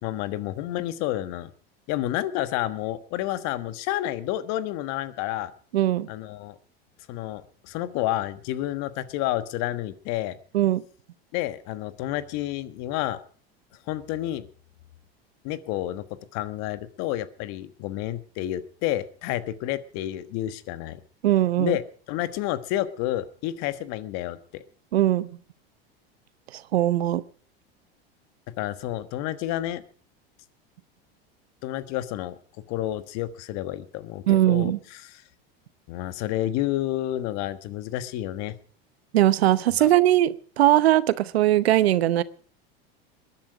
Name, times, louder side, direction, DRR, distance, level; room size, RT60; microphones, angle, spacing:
voice 1, 0.0-1.5 1.9-5.5 6.1-6.5 7.1-10.4 11.3-13.2 13.9-14.5 15.4-16.0 16.3-21.0 21.6-21.8 22.1-24.6 28.6-29.8 31.6-32.3 32.7-35.2 35.9-38.5 39.8-39.9, left 14 dB, 60° left, 13 dB, 1.4 m, -30 dB
voice 2, 5.7-6.1 10.5-10.8 21.2-21.8 24.9-25.3 26.5-27.2 34.3-34.8 39.1-42.2, right 13 dB, 85° right, 16 dB, 0.9 m, -20 dB
21.0 x 10.5 x 4.9 m, 0.44 s
hypercardioid pair, 95°, 30 cm